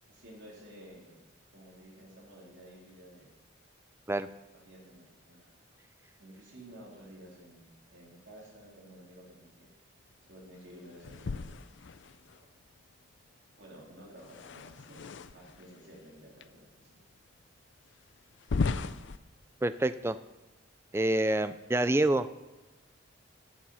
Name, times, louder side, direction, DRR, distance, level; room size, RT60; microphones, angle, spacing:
voice 1, 0.1-1.2 1.5-3.3 4.5-5.8 6.2-9.7 10.3-11.5 11.8-12.5 13.6-16.9, right 1 dB, 60° right, -3 dB, 3.6 m, -53 dB
sound 1, 11.0-12.4 14.2-15.7 16.4-16.5 17.1-17.2 18.3-19.2, left 4 dB, 60° left, 0.5 m, -35 dB
voice 2, 19.6-20.2 20.9-22.3, right 1 dB, 10° right, 13 dB, 0.3 m, -27 dB
14.5 x 7.3 x 5.6 m, 1.1 s
head